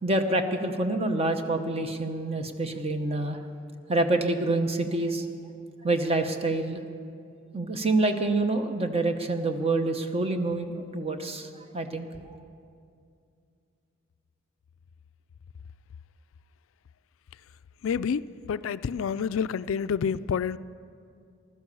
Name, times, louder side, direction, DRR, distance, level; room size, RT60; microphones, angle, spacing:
voice 1, 0.0-3.4 3.9-5.3 5.8-6.8 7.5-12.4, right 2 dB, 30° right, 1.0 m, -27 dB
voice 2, 17.8-20.6, left 7 dB, 85° left, 0.4 m, -28 dB
15.0 x 13.0 x 6.9 m
head